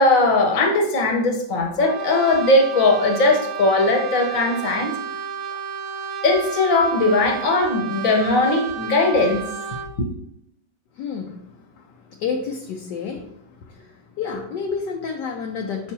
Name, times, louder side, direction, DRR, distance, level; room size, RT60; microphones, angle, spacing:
voice 1, 0.0-4.9 6.2-9.4 10.0-10.1, left 2 dB, 50° left, 1 dB, 1.3 m, -19 dB
Brass instrument, 1.8-10.0, right 8 dB, 75° right, 1.1 m, -32 dB
voice 2, 11.0-11.4 11.7-13.3 13.6-15.9, left 5 dB, 70° left, 2 dB, 1.2 m, -30 dB
6.7 x 5.2 x 2.9 m, 0.74 s
omnidirectional pair, 2.1 m